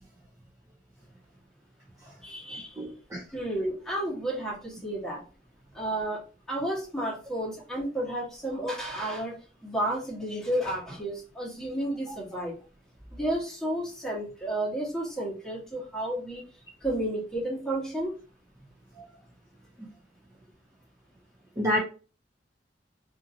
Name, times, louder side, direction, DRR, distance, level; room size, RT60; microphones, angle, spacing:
voice 1, 2.2-2.8 3.3-5.2 5.7-6.2 6.5-9.3 9.6-12.5 13.1-16.4 16.8-18.1, right 1 dB, 5° left, -5 dB, 1.2 m, -31 dB
voice 2, 2.8-3.2 19.0-19.1 21.6-21.8, equal, 15° right, -4 dB, 0.6 m, -28 dB
2.7 x 2.6 x 2.6 m, 0.36 s
head